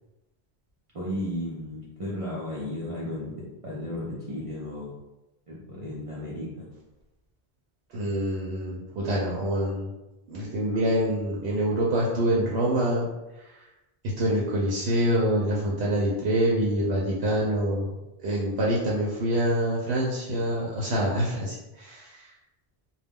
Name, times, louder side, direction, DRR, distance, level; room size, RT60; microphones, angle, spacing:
voice 1, 0.9-4.9 5.5-6.7, left 1 dB, 45° right, -7 dB, 0.5 m, -34 dB
voice 2, 7.9-9.9 10.3-13.1 13.4-13.7 14.0-17.9 18.2-22.3, right 1 dB, 75° right, -4 dB, 0.8 m, -26 dB
2.3 x 2.1 x 3.4 m, 1.0 s
omnidirectional pair, 1.1 m